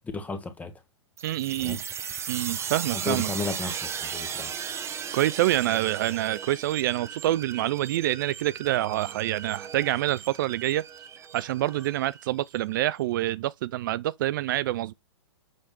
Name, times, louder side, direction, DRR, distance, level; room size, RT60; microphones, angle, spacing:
voice 1, 0.1-0.7 1.6-1.8 2.9-4.5, left 3 dB, 10° left, 1.3 m, -34 dB
sound 1, 1.2-12.6, right 7 dB, 20° right, 1.2 m, -37 dB
voice 2, 1.2-1.8 2.3-3.3 5.1-10.8 11.3-14.9, right 15 dB, 45° right, 0.4 m, -26 dB
7.9 x 3.5 x 4.2 m
figure-of-eight pair, 110°, 14 cm